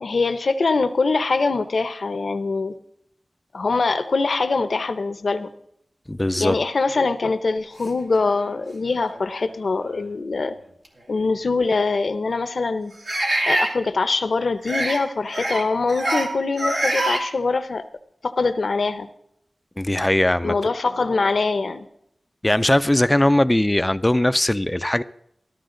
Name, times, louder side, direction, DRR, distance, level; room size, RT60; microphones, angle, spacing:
voice 1, 0.0-2.7 3.5-5.5 6.4-10.6 11.1-13.0 13.4-17.8 18.2-19.1 20.4-21.9, left 3 dB, 80° left, 0.8 m, -23 dB
voice 2, 6.1-6.6 19.8-20.6 22.4-25.0, left 1 dB, 20° left, 0.4 m, -19 dB
sound 1, 8.3-8.4 9.1-9.2 10.8-10.9 13.1-13.7 14.6-15.0 15.3-15.6 15.9-16.3 16.6-17.2, right 1 dB, 80° right, 2.4 m, -23 dB
13.5 x 13.0 x 3.8 m
cardioid pair, 50°, 0 cm